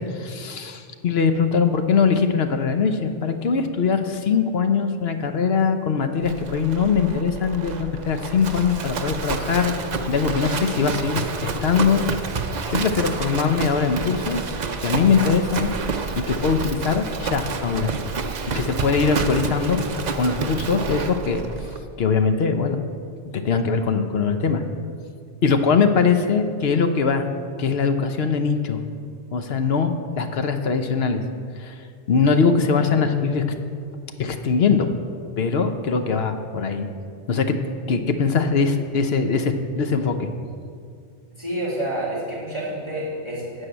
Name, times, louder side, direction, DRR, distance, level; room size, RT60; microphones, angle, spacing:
voice 1, 0.0-9.7 10.1-12.0 12.7-14.4 14.8-15.7 16.1-17.9 18.5-19.8 20.2-21.4 22.0-22.8 23.3-24.6 25.4-27.3 27.6-28.8 29.3-31.2 31.6-31.8 32.1-33.4 34.2-34.9 35.4-36.9 37.3-37.6 37.9-40.3, left 5 dB, 65° left, 7 dB, 1.0 m, -21 dB
Livestock farm animals working animals, 6.2-21.8, right 5 dB, 45° right, 0.7 m, -29 dB
voice 2, 41.4-43.6, right 1 dB, 25° left, -7 dB, 3.6 m, -28 dB
13.0 x 4.8 x 8.7 m, 2.3 s
omnidirectional pair, 1.2 m